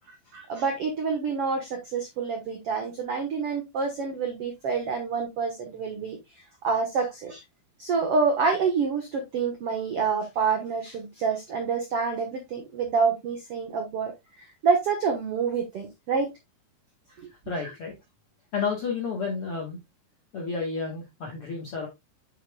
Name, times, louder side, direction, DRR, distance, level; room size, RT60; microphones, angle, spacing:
voice 1, 0.3-6.2 6.6-7.4 7.8-14.1 14.4-16.3 17.2-17.3, right 5 dB, 75° right, 1.3 m, -27 dB
voice 2, 17.5-17.9 18.5-19.8 20.3-21.9, left 5 dB, 65° left, 1.4 m, -31 dB
7.5 x 7.1 x 2.2 m
omnidirectional pair, 4.6 m